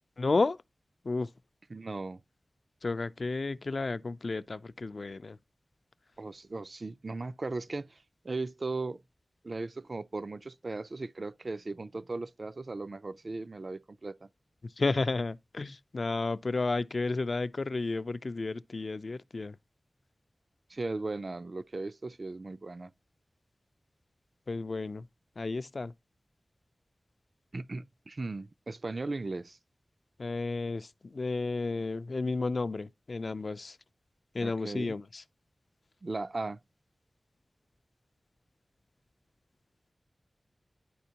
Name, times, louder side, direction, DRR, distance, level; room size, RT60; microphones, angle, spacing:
voice 1, 0.2-0.6 1.0-1.3 2.8-5.4 14.8-19.6 24.5-25.1 25.4-25.9 30.2-33.8 34.3-35.2, left 3 dB, 60° left, 0.3 m, -32 dB
voice 2, 1.7-2.2 6.2-9.0 9.4-14.3 20.7-22.9 27.5-29.6 34.4-35.0 36.0-36.6, right 3 dB, 50° right, 0.4 m, -37 dB
10.0 x 4.3 x 2.8 m
wide cardioid pair, 85°, 0 cm